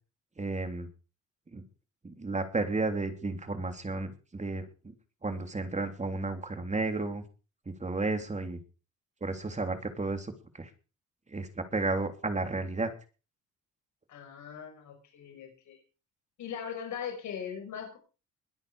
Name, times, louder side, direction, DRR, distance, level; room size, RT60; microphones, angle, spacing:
voice 1, 0.4-0.9 1.5-1.6 2.0-4.6 5.2-7.2 7.8-8.6 9.2-10.3 10.6-10.7 11.3-12.9, right 3 dB, 25° right, 6 dB, 3.4 m, -32 dB
voice 2, 14.1-15.8 16.4-18.0, left 8 dB, 70° left, 2 dB, 6.3 m, -40 dB
22.0 x 8.4 x 5.0 m, 0.35 s
cardioid pair, 90°, 30 cm